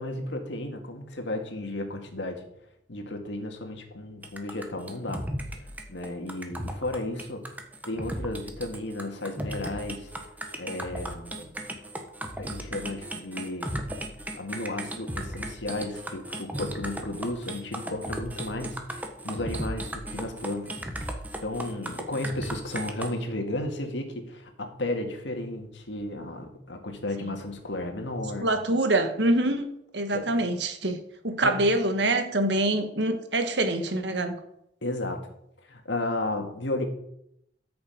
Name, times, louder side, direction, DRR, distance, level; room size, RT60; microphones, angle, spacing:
voice 1, 0.0-2.4 2.9-5.2 5.9-7.4 7.9-10.1 10.6-11.6 12.4-13.7 14.4-20.8 21.4-28.5 30.1-30.3 31.4-31.6 34.8-35.2 35.7-36.8, left 1 dB, 85° left, 4 dB, 2.0 m, -33 dB
sound 1, 4.2-23.1, right 1 dB, 10° right, 1.3 m, -36 dB
voice 2, 28.4-29.7 29.9-34.4, right 1 dB, 75° right, 7 dB, 1.6 m, -25 dB
13.5 x 6.9 x 5.3 m, 0.77 s
head